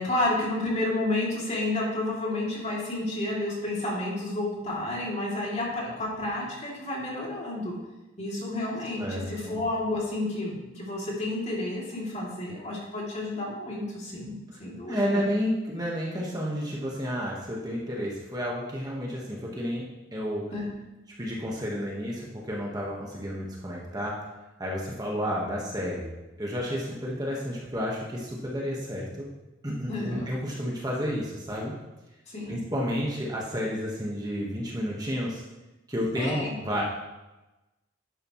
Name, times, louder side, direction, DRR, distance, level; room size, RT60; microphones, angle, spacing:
voice 1, 0.0-7.7 8.2-14.3 14.6-15.3 20.5-20.7 29.9-30.3 32.3-32.6 36.2-36.5, left 2 dB, 35° left, -4 dB, 2.9 m, -30 dB
voice 2, 9.0-9.6 14.9-19.8 20.1-20.4 21.2-24.2 24.6-26.1 26.4-29.3 29.6-31.7 32.5-35.4 35.9-36.8, equal, 20° right, -3 dB, 1.5 m, -31 dB
11.5 x 9.3 x 3.2 m, 1.1 s
head